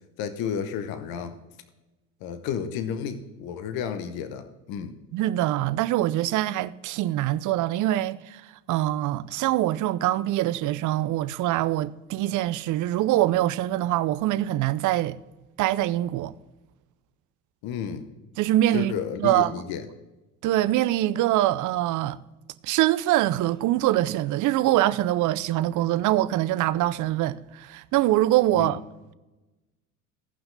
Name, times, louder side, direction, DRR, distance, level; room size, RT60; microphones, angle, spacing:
voice 1, 0.2-1.4 2.2-5.0 17.6-18.1 18.7-19.8 28.5-28.8, left 8 dB, 55° left, 1.0 m, -32 dB
voice 2, 5.1-15.2 15.6-16.3 18.4-18.9 19.2-19.5 20.4-22.2 22.6-28.8, right 14 dB, 45° right, 0.5 m, -24 dB
16.5 x 5.8 x 3.9 m
hypercardioid pair, 70°, 44 cm